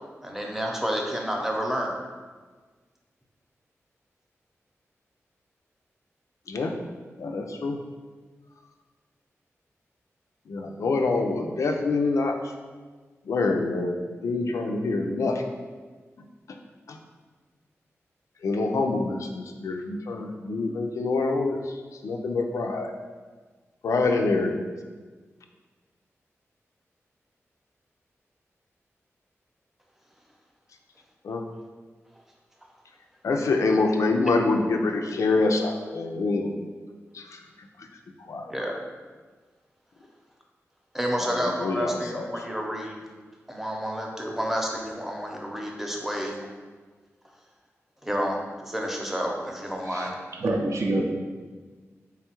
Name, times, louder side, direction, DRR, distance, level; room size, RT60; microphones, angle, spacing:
voice 1, 0.2-1.9 38.5-38.7 40.9-43.0 43.5-46.4 48.0-50.1, equal, 5° right, 0 dB, 0.6 m, -30 dB
voice 2, 7.2-7.8 10.5-12.4 13.3-14.0 14.2-15.4 16.9-17.0 18.4-21.7 22.0-22.9 23.8-24.7 31.2-31.4 33.2-36.5 37.1-37.4 38.3-38.5 41.2-42.4, left 3 dB, 80° left, 3 dB, 0.4 m, -26 dB
voice 3, 49.9-51.0, right 2 dB, 70° right, 1 dB, 0.5 m, -27 dB
3.4 x 2.3 x 4.4 m, 1.4 s
cardioid pair, 65°, 5 cm